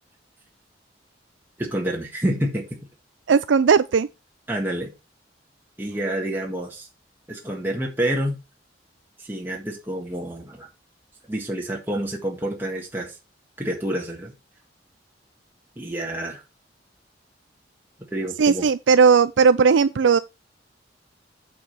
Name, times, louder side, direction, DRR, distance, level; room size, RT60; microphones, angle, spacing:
voice 1, 1.6-2.8 4.5-4.9 5.8-6.9 7.3-8.4 9.2-10.7 11.3-13.2 13.6-14.3 15.8-16.4 18.1-18.7, right 1 dB, 10° right, 1.7 m, -28 dB
voice 2, 3.3-4.1 18.4-20.2, right 5 dB, 80° right, 0.4 m, -17 dB
8.6 x 5.0 x 5.7 m
head